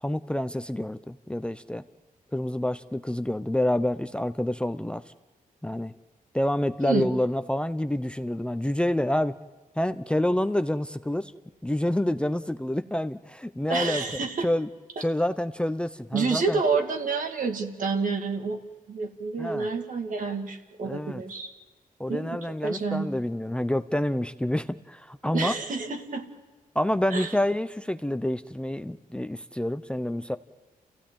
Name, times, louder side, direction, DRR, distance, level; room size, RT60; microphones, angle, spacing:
voice 1, 0.0-1.8 2.3-5.0 5.6-5.9 6.3-9.3 9.8-11.3 11.6-14.0 14.4-14.7 15.0-16.6 19.4-19.7 20.8-21.2 22.0-25.5 26.7-30.4, left 1 dB, 5° left, 12 dB, 0.7 m, -28 dB
voice 2, 13.7-14.5 16.1-18.6 18.9-21.5 22.1-22.4 22.6-23.1 25.3-26.2 27.1-27.3, right 4 dB, 65° right, 4 dB, 2.4 m, -28 dB
29.0 x 15.5 x 8.8 m, 1.3 s
cardioid pair, 65°, 15 cm